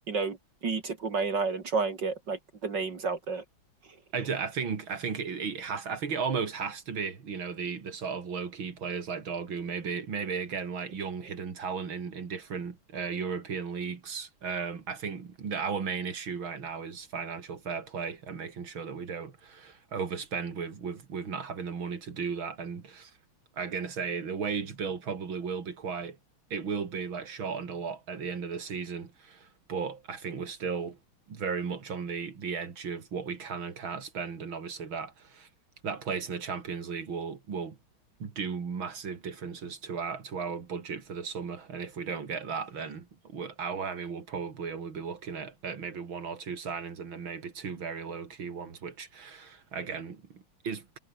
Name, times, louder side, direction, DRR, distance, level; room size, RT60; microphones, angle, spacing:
voice 1, 0.1-0.4 0.6-3.4, right 4 dB, 60° right, 3.1 m, -30 dB
voice 2, 4.1-23.1 23.6-26.2 26.5-31.0 31.3-35.5 35.8-37.8 38.2-51.0, right 5 dB, 75° right, 3.5 m, -35 dB
omnidirectional pair, 2.2 m